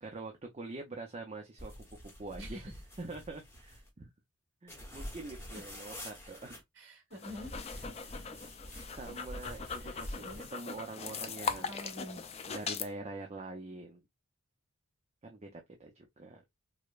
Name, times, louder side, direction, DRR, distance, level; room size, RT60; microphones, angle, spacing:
voice 1, 0.0-2.7 3.0-4.1 4.6-6.6 8.9-11.8 12.5-14.0 15.2-16.4, right 2 dB, 30° right, 0.5 m, -45 dB
sound 1, 1.6-3.9 4.7-6.6 7.3-10.5, equal, 10° left, 1.0 m, -46 dB
voice 2, 2.4-2.7 6.8-7.9 9.8-10.5 11.7-12.2, equal, 60° right, 1.7 m, -47 dB
sound 2, 7.1-12.9, left 5 dB, 30° left, 0.4 m, -40 dB
4.9 x 2.1 x 2.4 m
head